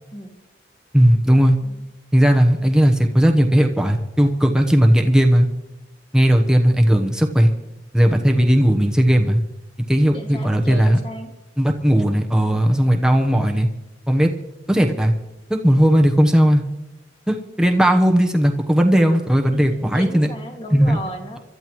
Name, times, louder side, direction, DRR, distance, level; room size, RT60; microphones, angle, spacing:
voice 1, 0.9-1.6 2.1-5.5 6.1-7.5 7.9-9.4 9.9-11.0 11.6-13.7 14.1-14.3 14.7-15.1 15.5-16.6 17.3-20.3 20.7-21.0, equal, 5° right, 2 dB, 0.9 m, -16 dB
voice 2, 10.1-11.3 19.5-21.4, equal, 25° left, 2 dB, 2.0 m, -34 dB
27.0 x 12.5 x 3.1 m, 0.99 s
head